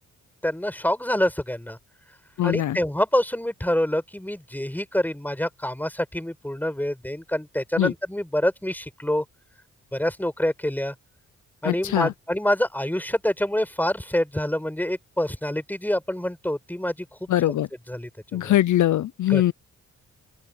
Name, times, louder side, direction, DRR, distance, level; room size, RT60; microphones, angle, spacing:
voice 1, 0.4-1.8 2.4-9.2 9.9-10.9 11.6-17.1 17.5-17.6 17.9-18.5 19.3-19.4, left 1 dB, 5° left, 5.5 m, -26 dB
voice 2, 2.4-2.8 7.8-7.9 11.6-12.1 17.3-17.7 18.3-19.5, left 13 dB, 70° left, 0.6 m, -22 dB
open air
cardioid pair, 70°, 31 cm